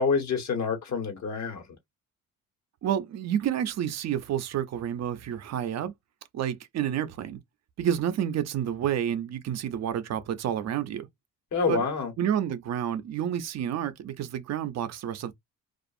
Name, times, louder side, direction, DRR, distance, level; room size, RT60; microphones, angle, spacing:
voice 1, 0.0-1.6 11.5-12.1, left 5 dB, 65° left, 1.2 m, -27 dB
voice 2, 2.8-5.9 6.3-7.4 7.8-11.1 11.7-11.8 12.2-15.3, right 10 dB, 60° right, 0.5 m, -29 dB
2.4 x 2.3 x 2.5 m
cardioid pair, 90°, 30 cm